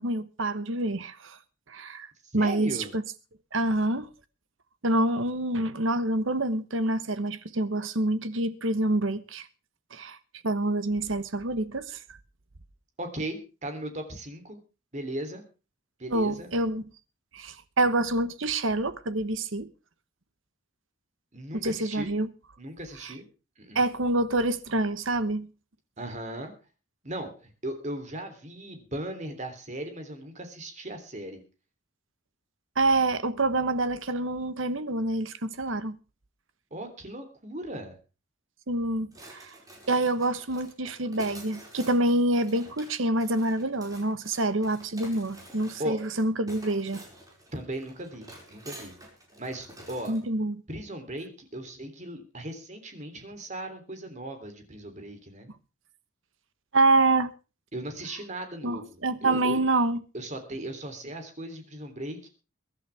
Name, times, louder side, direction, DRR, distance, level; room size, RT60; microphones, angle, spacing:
voice 1, 0.0-1.4 1.7-2.1 2.3-3.0 3.5-4.1 4.8-9.5 9.9-10.2 10.4-12.0 16.1-16.8 17.3-19.7 21.6-22.3 23.0-23.1 23.7-25.5 32.8-36.0 38.7-39.5 39.9-47.0 50.1-50.6 56.7-57.3 58.6-60.0, right 2 dB, 75° right, 1.3 m, -27 dB
voice 2, 2.3-2.9 13.0-14.6 14.9-15.4 16.0-16.5 21.3-22.1 22.6-23.3 23.6-23.8 26.0-26.5 27.0-31.4 36.7-38.0 45.8-46.0 47.5-48.9 49.4-50.1 50.7-55.5 57.7-59.6 60.1-62.3, right 1 dB, 35° right, 3.3 m, -37 dB
sound 1, 39.1-50.2, right 1 dB, 20° right, 5.3 m, -49 dB
23.0 x 11.5 x 3.5 m
head